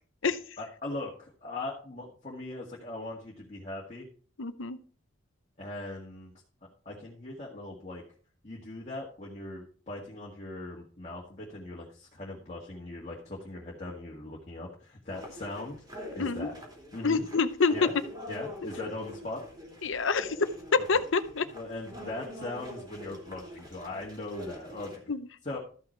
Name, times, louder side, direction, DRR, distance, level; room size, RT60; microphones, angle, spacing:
voice 1, 0.6-4.1 5.6-6.3 6.9-8.0 8.4-15.8 16.1-16.6 16.9-17.3 17.7-17.9 18.3-19.4 20.9-21.0 21.5-25.0 25.4-25.6, left 2 dB, 30° left, -3 dB, 1.8 m, -39 dB
voice 2, 4.4-4.8 16.2-16.5 17.0-17.7 19.8-20.4 20.7-21.4 25.1-25.3, left 4 dB, 65° left, 12 dB, 0.8 m, -27 dB
sound 1, 15.1-25.0, left 1 dB, 20° right, 3.0 m, -45 dB
13.5 x 5.8 x 4.5 m, 0.42 s
head